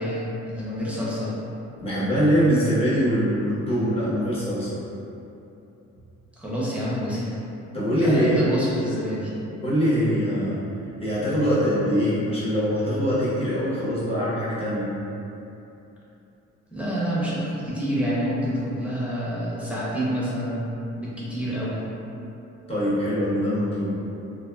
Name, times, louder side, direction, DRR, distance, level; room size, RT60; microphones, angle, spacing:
voice 1, 0.0-1.3 6.4-7.3 8.0-9.3 16.7-20.7 21.0-21.8, equal, 5° right, -9 dB, 0.7 m, -27 dB
voice 2, 1.8-4.8 7.7-8.4 9.6-10.6 11.0-14.9 22.7-23.9, equal, 20° left, -10 dB, 0.9 m, -23 dB
2.8 x 2.2 x 2.3 m, 2.9 s
cardioid pair, 90°, 30 cm